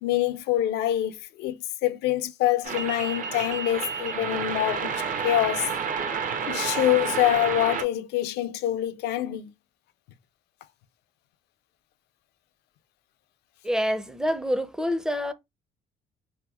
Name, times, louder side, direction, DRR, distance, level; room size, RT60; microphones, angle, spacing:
voice 1, 0.0-5.7 6.5-9.5, left 13 dB, 80° left, 0.5 m, -25 dB
sound 1, 2.6-7.8, right 6 dB, 50° right, 0.6 m, -30 dB
voice 2, 13.6-15.3, equal, 5° right, 0.4 m, -26 dB
3.4 x 2.8 x 2.3 m
cardioid pair, 110°, 17 cm